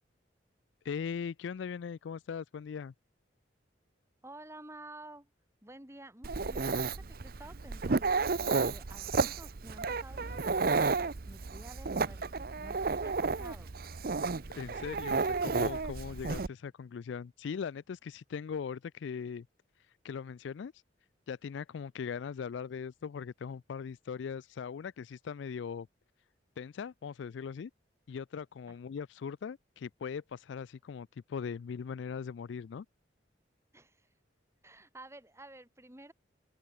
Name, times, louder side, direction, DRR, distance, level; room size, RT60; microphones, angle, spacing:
voice 1, 0.8-2.9 14.5-19.5 20.0-20.7 21.3-25.9 26.6-27.7 28.1-32.9, left 6 dB, 75° left, 0.4 m, -40 dB
voice 2, 4.2-5.3 5.6-13.7 28.7-28.8 33.7-34.1 34.6-36.1, right 1 dB, 15° right, 3.0 m, -52 dB
Dog, 6.2-16.5, right 4 dB, 50° right, 0.7 m, -32 dB
open air
head